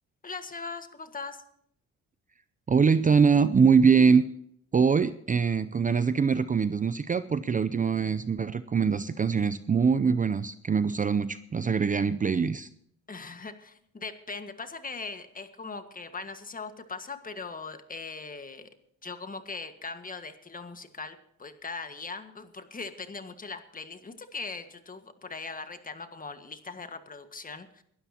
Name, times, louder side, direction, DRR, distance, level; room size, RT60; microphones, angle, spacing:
voice 1, 0.2-1.4 13.1-18.7 19.0-27.8, left 4 dB, 30° left, 9 dB, 1.6 m, -40 dB
voice 2, 2.7-4.2 4.7-12.7, right 5 dB, 25° right, 13 dB, 0.5 m, -23 dB
22.5 x 12.5 x 2.9 m, 0.69 s
cardioid pair, 90°, 30 cm